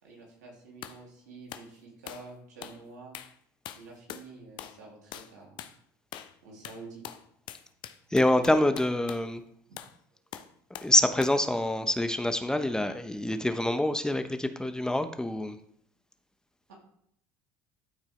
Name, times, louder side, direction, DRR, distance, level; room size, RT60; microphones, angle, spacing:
voice 1, 0.0-3.2 3.8-5.6 6.4-7.0 9.7-9.8 16.7-16.8, right 3 dB, 85° right, -2 dB, 2.8 m, -48 dB
sound 1, 0.8-1.0 1.5-1.7 2.1-2.3 2.6-2.8 3.1-3.4 3.7-4.3 4.6-4.8 5.1-5.3 5.6-5.8 6.1-6.4 6.6-9.3 9.8-10.0 10.3-11.0 11.2-11.4, left 11 dB, 60° left, 0.7 m, -43 dB
voice 2, 8.1-9.4 10.8-15.6, left 1 dB, 5° left, 8 dB, 0.8 m, -26 dB
13.0 x 4.4 x 3.3 m, 0.69 s
hypercardioid pair, 70°, 9 cm